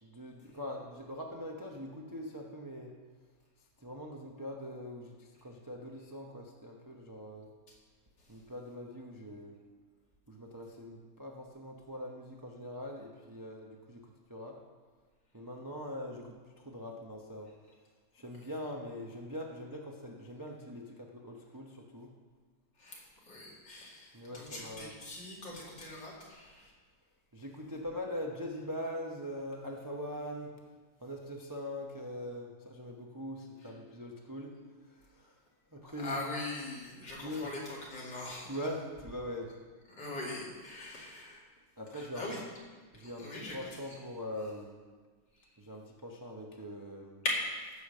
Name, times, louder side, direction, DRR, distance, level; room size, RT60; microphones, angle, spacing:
voice 1, 0.0-2.9 3.8-7.5 8.3-9.6 10.3-14.0 14.3-14.6 15.3-17.5 18.1-22.1 24.1-25.0 27.3-30.5 31.0-34.6 34.9-35.3 35.7-36.2 37.2-37.5 38.4-39.5 41.8-42.3 42.9-44.8 45.6-47.2, left 1 dB, 20° right, 0 dB, 0.5 m, -42 dB
voice 2, 22.8-26.7 36.0-38.5 40.0-41.4 41.9-42.4 43.0-43.6 45.4-45.5 47.2-47.3, left 2 dB, 60° left, -4 dB, 3.1 m, -41 dB
15.0 x 5.2 x 6.7 m, 1.4 s
omnidirectional pair, 2.2 m